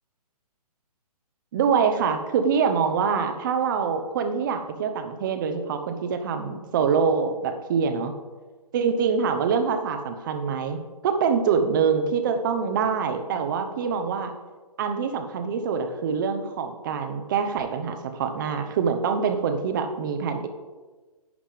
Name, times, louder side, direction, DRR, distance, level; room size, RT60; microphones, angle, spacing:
voice 1, 1.5-8.1 8.7-10.8 11.0-14.3 14.8-20.5, right 6 dB, 30° right, 8 dB, 1.0 m, -25 dB
11.0 x 9.8 x 3.7 m, 1.3 s
figure-of-eight pair, 130°, 20 cm